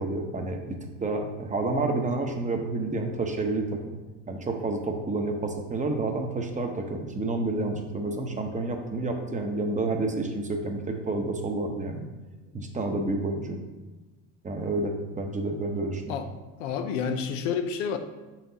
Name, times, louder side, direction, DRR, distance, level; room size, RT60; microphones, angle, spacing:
voice 1, 0.0-4.0 4.3-12.1 12.5-13.6 14.4-16.2, right 2 dB, 20° right, 4 dB, 0.9 m, -29 dB
voice 2, 16.6-18.0, left 6 dB, 85° left, 7 dB, 0.7 m, -29 dB
6.6 x 5.8 x 2.8 m, 1.2 s
supercardioid pair, 90°, 37 cm